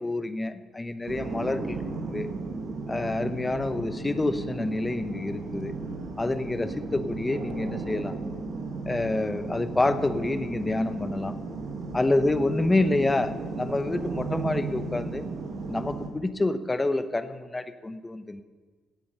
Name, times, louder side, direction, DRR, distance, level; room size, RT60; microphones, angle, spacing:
voice 1, 0.0-2.3 2.9-5.7 6.2-8.1 8.9-11.4 11.9-15.2 15.7-18.4, left 2 dB, 20° left, 11 dB, 0.9 m, -28 dB
sound 1, 1.1-16.1, right 3 dB, 70° right, 2.1 m, -35 dB
16.5 x 8.5 x 5.6 m, 1.4 s
cardioid pair, 90°, 0 cm